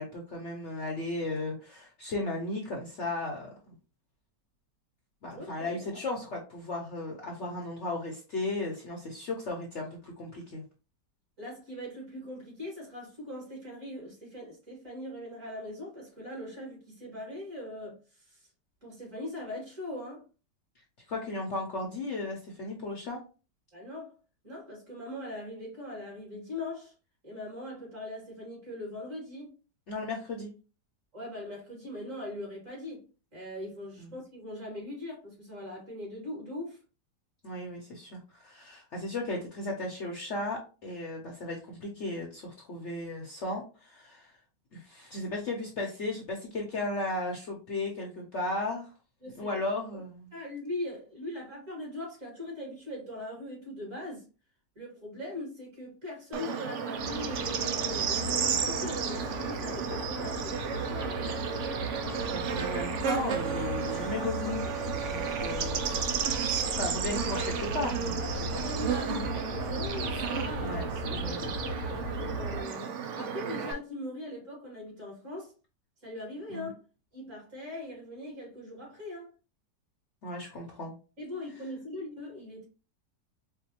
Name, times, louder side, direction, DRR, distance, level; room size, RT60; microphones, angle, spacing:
voice 1, 0.0-3.7 5.2-10.6 21.1-23.2 29.9-30.5 34.0-34.1 37.4-44.4 44.7-48.9 49.4-50.3 62.3-64.7 65.0-66.0 66.8-68.6 70.6-70.8 71.1-71.5 76.5-76.7 80.2-80.9, left 2 dB, 55° left, 0.8 m, -35 dB
voice 2, 5.3-6.0 11.4-18.5 18.8-20.2 23.7-24.2 24.4-26.9 27.2-29.6 31.1-36.8 49.2-49.5 50.3-54.2 54.8-61.1 65.3-65.5 68.6-70.9 71.2-75.5 76.0-76.8 77.1-79.3 81.2-82.7, left 1 dB, 50° right, 2.6 m, -41 dB
Bird / Insect, 56.3-73.7, right 7 dB, 75° right, 0.7 m, -33 dB
sound 1, 57.0-72.6, left 1 dB, 75° left, 1.1 m, -37 dB
4.6 x 2.2 x 2.8 m
omnidirectional pair, 1.8 m